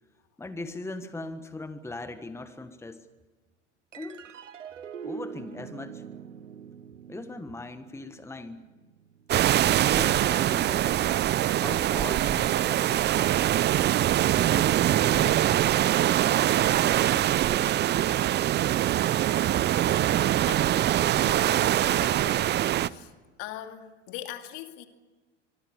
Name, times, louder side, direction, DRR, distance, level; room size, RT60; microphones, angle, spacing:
voice 1, 0.4-3.1 4.0-4.3 5.0-6.0 7.1-8.6 9.8-11.1 11.6-13.3 14.3-15.7 16.5-17.7, left 2 dB, 5° left, 1.5 m, -40 dB
sound 1, 3.9-10.6, right 8 dB, 85° right, 1.4 m, -44 dB
sound 2, 9.3-22.9, right 12 dB, 30° right, 0.7 m, -23 dB
voice 2, 19.4-20.1 20.5-23.1 23.4-24.9, left 11 dB, 55° left, 2.6 m, -42 dB
25.0 x 24.0 x 7.2 m
hypercardioid pair, 85°, 36 cm